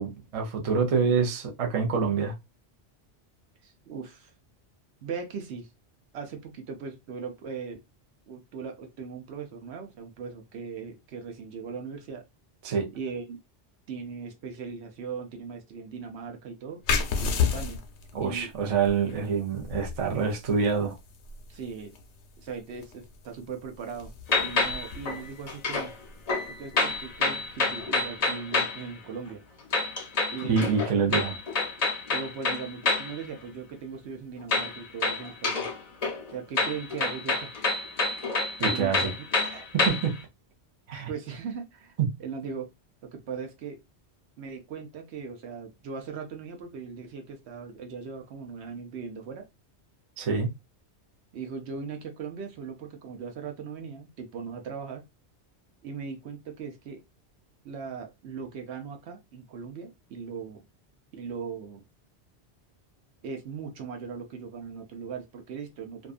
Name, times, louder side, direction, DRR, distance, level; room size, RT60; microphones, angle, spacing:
voice 1, 0.0-2.3 12.6-12.9 18.1-21.0 30.5-31.4 38.6-39.1 39.5-40.1 40.9-41.1 50.2-50.5, right 5 dB, 45° right, 0.5 m, -26 dB
voice 2, 3.6-4.3 5.0-5.7 6.1-7.8 8.3-12.2 12.9-13.4 13.9-16.8 17.2-17.8 18.2-18.5 21.5-21.9 22.4-24.1 24.4-25.9 26.5-29.4 30.3-30.8 32.1-35.7 36.3-37.5 38.7-39.1 41.1-41.9 42.2-42.7 43.0-43.8 44.4-49.4 51.3-55.0 55.8-57.0 57.6-60.6 61.1-61.9 63.2-66.1, right 5 dB, 75° right, 0.9 m, -39 dB
sound 1, 16.8-28.1, left 5 dB, 80° left, 0.8 m, -34 dB
sound 2, 24.3-25.9 26.3-28.8 29.7-33.2 34.5-35.8 36.0-40.2, left 3 dB, 45° left, 0.6 m, -28 dB
2.6 x 2.3 x 2.3 m
omnidirectional pair, 1.2 m